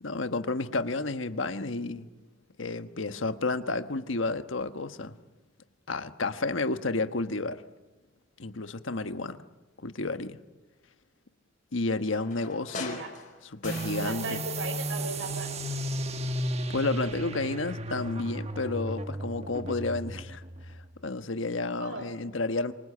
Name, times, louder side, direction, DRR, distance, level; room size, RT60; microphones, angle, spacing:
voice 1, 0.0-2.1 2.6-5.1 5.9-7.6 8.4-9.4 9.8-10.4 11.7-13.0 13.4-14.4 16.7-20.8 21.0-22.7, left 3 dB, 80° left, 1.3 m, -31 dB
sound 1, 12.1-14.5 14.8-15.8 16.2-16.3, left 3 dB, 40° left, 4.6 m, -42 dB
sound 2, 13.6-20.9, right 1 dB, 30° right, 1.4 m, -34 dB
voice 2, 14.0-15.5 21.8-22.1, right 2 dB, 75° right, 5.9 m, -37 dB
26.5 x 24.5 x 8.7 m
head